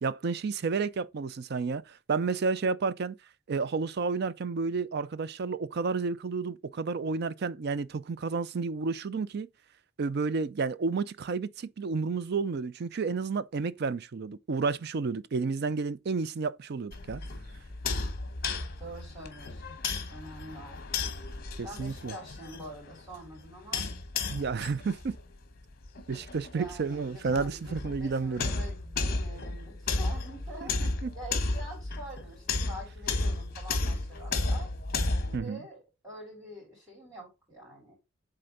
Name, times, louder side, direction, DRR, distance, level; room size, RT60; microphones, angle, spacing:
voice 1, 0.0-3.2 3.5-9.5 10.0-17.2 21.6-22.1 24.3-25.2 26.1-28.5 30.6-31.1 35.3-35.6, right 4 dB, 60° right, 0.4 m, -31 dB
sound 1, 16.9-35.4, left 3 dB, 50° left, 1.1 m, -34 dB
voice 2, 18.8-19.8 20.1-20.8 21.6-23.9 26.5-34.7 35.2-38.0, right 1 dB, 10° right, 3.8 m, -46 dB
7.7 x 3.8 x 3.9 m
head